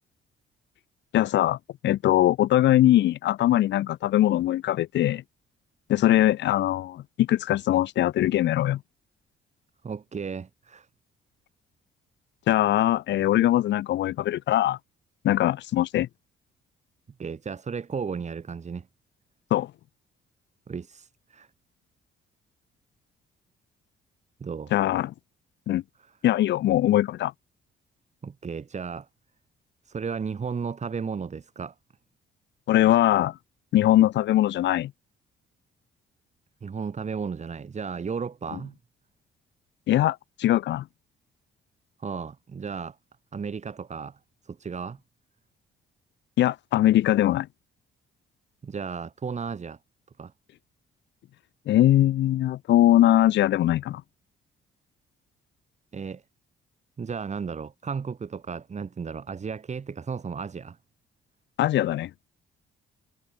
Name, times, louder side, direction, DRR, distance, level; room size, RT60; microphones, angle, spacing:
voice 1, 1.1-1.6 1.8-5.2 5.9-8.8 12.5-14.8 15.2-16.1 19.5-19.7 24.7-25.1 25.7-25.8 26.2-27.3 32.7-33.3 33.7-34.9 39.9-40.9 46.4-47.5 51.7-54.0 61.6-62.1, left 13 dB, 65° left, 0.5 m, -21 dB
voice 2, 9.8-10.9 17.2-18.9 20.7-21.5 24.4-24.7 28.2-29.1 29.8-31.7 36.6-38.7 42.0-43.0 43.3-44.2 44.4-45.0 48.6-49.8 50.2-50.3 55.9-56.2 57.0-60.8, right 6 dB, 35° right, 1.7 m, -34 dB
cardioid pair, 90°, 20 cm